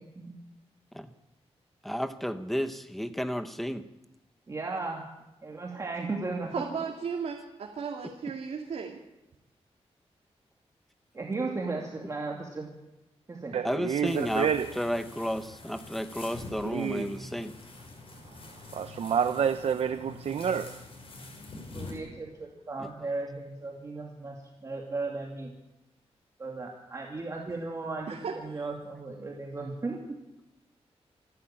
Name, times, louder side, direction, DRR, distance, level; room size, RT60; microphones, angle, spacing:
voice 1, 1.8-3.8 13.6-14.5 14.8-17.5 22.8-22.9, equal, ahead, 10 dB, 1.0 m, -32 dB
voice 2, 4.5-5.0 5.4-6.5 11.1-12.7 13.3-13.6 21.7-24.4 24.6-25.5 26.4-28.1 28.4-30.0, right 3 dB, 30° right, 0 dB, 2.4 m, -35 dB
voice 3, 6.5-9.0 28.1-28.7, right 6 dB, 85° right, 1 dB, 2.3 m, -35 dB
voice 4, 13.5-14.7 16.7-17.1 18.7-20.8, right 7 dB, 65° right, 10 dB, 0.7 m, -28 dB
sound 1, 14.0-21.9, left 3 dB, 60° left, 6.1 m, -45 dB
27.5 x 11.5 x 8.9 m, 0.99 s
wide cardioid pair, 175°, 11 cm